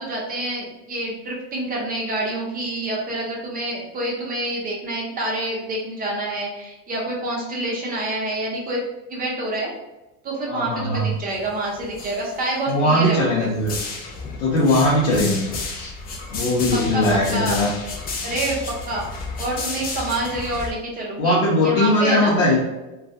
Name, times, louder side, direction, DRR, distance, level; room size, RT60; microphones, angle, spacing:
voice 1, 0.0-8.8 9.1-9.7 10.2-13.5 16.9-17.0 17.3-17.7 18.2-19.0 19.4-22.3, right 1 dB, 20° right, -3 dB, 0.7 m, -27 dB
voice 2, 10.5-11.1 12.7-13.8 14.4-15.4 15.7-15.9 16.3-17.7 18.2-18.3 21.2-22.6, left 1 dB, 75° left, -7 dB, 0.8 m, -20 dB
sound 1, 11.1-11.5 11.8-12.7 13.5-20.7, left 3 dB, 25° left, 0.4 m, -32 dB
2.3 x 2.2 x 2.7 m, 1.0 s
supercardioid pair, 120°, 39 cm